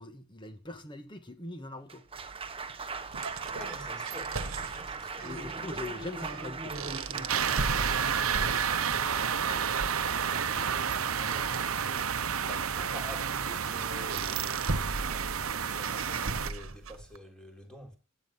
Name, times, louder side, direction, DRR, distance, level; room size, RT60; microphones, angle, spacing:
voice 1, 0.0-2.0 5.2-7.8 10.0-11.5, left 2 dB, 25° left, 2.2 m, -44 dB
Applause, 1.7-14.0, right 4 dB, 25° right, 1.3 m, -40 dB
sound 1, 2.2-17.2, right 3 dB, 70° right, 1.4 m, -39 dB
voice 2, 3.5-5.3 8.4-9.8 11.1-14.7 15.1-18.0, left 1 dB, 5° left, 3.7 m, -48 dB
sound 2, 7.3-16.5, right 7 dB, 85° right, 1.0 m, -30 dB
16.0 x 10.5 x 5.9 m
head